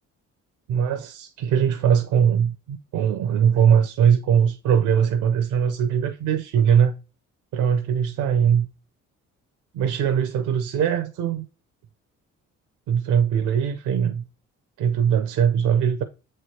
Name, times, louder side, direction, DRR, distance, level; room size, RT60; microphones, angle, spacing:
voice 1, 0.7-6.9 7.5-8.7 9.7-11.4 12.9-14.2 14.8-16.0, right 8 dB, 85° right, 0.7 m, -21 dB
7.5 x 3.3 x 4.3 m
cardioid pair, 90°, 30 cm